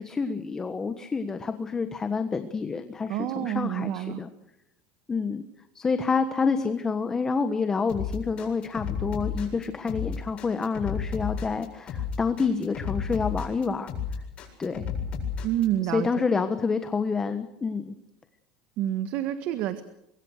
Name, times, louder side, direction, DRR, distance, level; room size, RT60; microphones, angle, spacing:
voice 1, 0.0-4.3 5.1-5.4 5.7-13.9 14.6-14.8 15.9-17.9, left 5 dB, 20° left, 9 dB, 1.3 m, -28 dB
voice 2, 3.1-4.2 15.4-16.1 18.8-19.8, right 12 dB, 55° right, 10 dB, 1.5 m, -28 dB
sound 1, 7.9-15.6, left 6 dB, 35° left, 8.0 m, -32 dB
24.5 x 23.0 x 6.6 m, 0.85 s
supercardioid pair, 130°, 3 cm